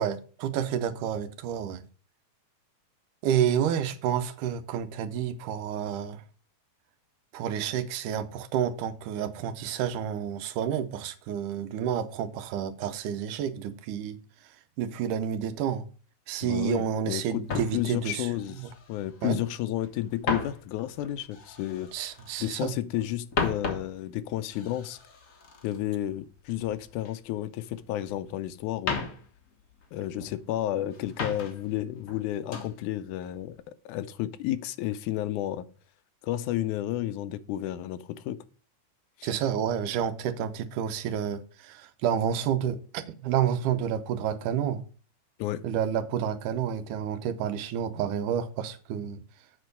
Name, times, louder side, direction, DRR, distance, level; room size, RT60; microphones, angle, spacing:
voice 1, 0.0-1.8 3.2-6.2 7.3-14.2 14.8-15.9 16.3-18.3 18.6-18.7 19.2-19.4 21.9-22.7 39.2-44.8 45.6-49.2, right 9 dB, 90° right, 2.3 m, -29 dB
voice 2, 16.4-21.9 22.4-25.0 25.6-29.1 29.9-33.6 33.9-35.7 36.2-38.4 39.2-39.3 45.4-45.7, left 13 dB, 80° left, 2.1 m, -32 dB
sound 1, 17.4-19.5 19.8-22.6 22.9-27.1 27.4-28.3 28.7-30.5 30.9-31.8 32.1-32.8 33.2-33.5, left 4 dB, 65° left, 0.7 m, -36 dB
7.5 x 4.4 x 6.6 m
omnidirectional pair, 3.5 m